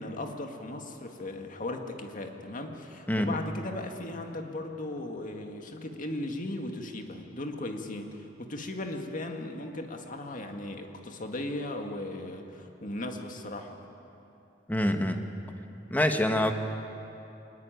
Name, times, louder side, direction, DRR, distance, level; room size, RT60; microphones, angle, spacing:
voice 1, 0.0-13.8, left 1 dB, 45° left, 4 dB, 2.1 m, -37 dB
voice 2, 14.7-15.3 15.9-16.5, left 1 dB, 10° left, 5 dB, 1.4 m, -26 dB
22.5 x 20.5 x 9.3 m, 2.9 s
head